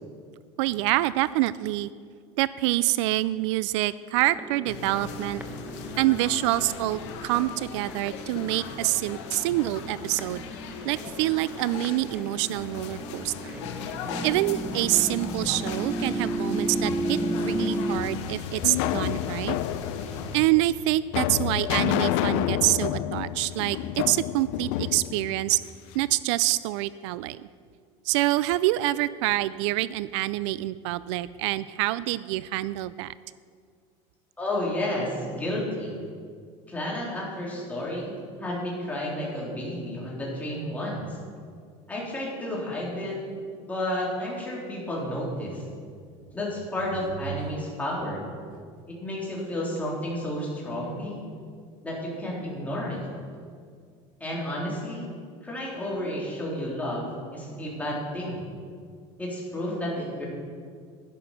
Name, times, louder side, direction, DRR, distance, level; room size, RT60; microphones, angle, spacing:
voice 1, 0.6-1.9 2.4-5.4 6.0-10.4 10.8-13.6 14.2-19.6 20.3-25.6 25.9-27.5 28.0-33.1, right 16 dB, 75° right, 17 dB, 0.4 m, -26 dB
sound 1, 4.2-18.0, right 2 dB, 10° right, 1.0 m, -34 dB
sound 2, 4.6-20.5, left 6 dB, 90° left, 1.4 m, -38 dB
sound 3, 18.0-26.1, left 13 dB, 70° left, 0.6 m, -29 dB
voice 2, 34.4-35.9 36.7-38.1 38.4-41.1 41.9-43.2 43.7-45.6 46.3-48.2 48.9-51.2 51.8-53.1 54.2-55.1 55.4-58.4 59.2-60.3, left 1 dB, 10° left, -5 dB, 3.8 m, -31 dB
11.5 x 11.0 x 5.9 m, 2.1 s
supercardioid pair, 140°, 15 cm